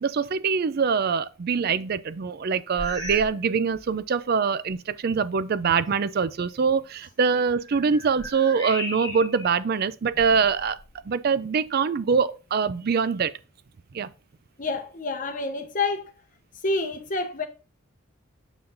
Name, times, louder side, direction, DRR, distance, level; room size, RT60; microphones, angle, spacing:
voice 1, 0.0-10.8 11.1-13.3 13.9-14.1, right 5 dB, 45° right, 0.4 m, -24 dB
sound 1, 2.7-3.4 3.7-4.0 4.7-4.8 7.2-9.5 10.1-11.1, equal, 20° left, 2.0 m, -37 dB
voice 2, 14.6-16.1 16.6-17.5, left 3 dB, 40° left, 1.0 m, -28 dB
6.9 x 5.8 x 2.6 m
head